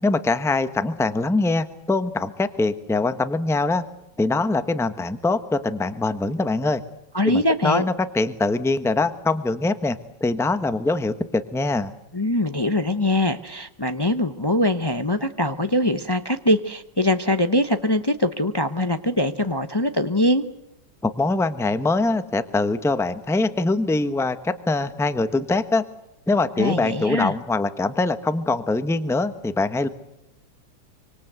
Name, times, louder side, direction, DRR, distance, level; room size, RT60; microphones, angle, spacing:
voice 1, 0.0-3.8 4.2-6.8 7.2-11.9 21.0-25.8 26.3-29.9, left 3 dB, ahead, 11 dB, 0.7 m, -23 dB
voice 2, 7.1-7.8 12.1-20.4 26.6-27.3, left 1 dB, 40° left, 8 dB, 0.3 m, -22 dB
26.0 x 25.0 x 8.1 m, 0.91 s
omnidirectional pair, 2.1 m